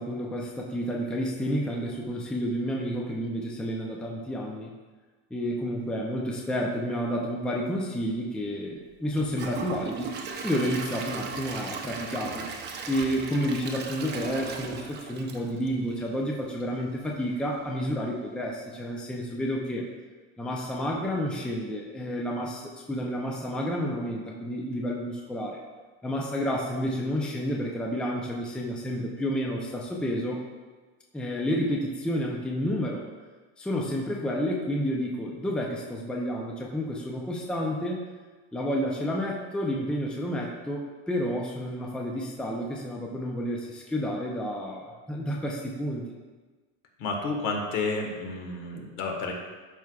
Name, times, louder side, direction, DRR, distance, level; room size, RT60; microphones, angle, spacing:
voice 1, 0.0-4.7 5.3-10.1 10.4-12.5 12.9-19.9 20.4-25.6 26.0-30.4 31.1-33.0 33.6-38.1 38.5-46.1, equal, 5° left, -1 dB, 0.5 m, -30 dB
Gurgling / Toilet flush / Trickle dribble, 9.1-16.2 16.6-16.7 17.2-17.3, right 5 dB, 30° right, 0.7 m, -37 dB
voice 2, 47.0-49.3, left 3 dB, 65° left, 2 dB, 1.5 m, -30 dB
12.0 x 4.7 x 2.3 m, 1.3 s
cardioid pair, 150°, 32 cm